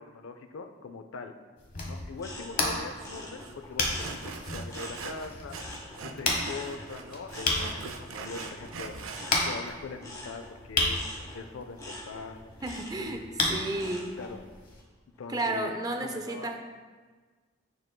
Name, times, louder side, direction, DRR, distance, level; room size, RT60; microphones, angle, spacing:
voice 1, 0.0-1.3 1.8-9.0 9.4-12.5 12.9-13.9 14.2-14.4 15.2-16.5, left 4 dB, 90° left, 7 dB, 0.4 m, -42 dB
sound 1, 1.6-14.8, left 2 dB, 45° left, 0.9 m, -34 dB
sound 2, 2.2-5.2 5.5-14.4 14.8-15.3, left 1 dB, 20° left, 0.9 m, -45 dB
Sawing, 3.0-3.1 3.4-3.5 4.0-6.2 6.5-9.3, right 5 dB, 90° right, 0.5 m, -42 dB
voice 2, 12.6-14.1 15.3-16.6, right 2 dB, 20° right, 4 dB, 0.4 m, -33 dB
9.4 x 4.5 x 2.2 m, 1.4 s
head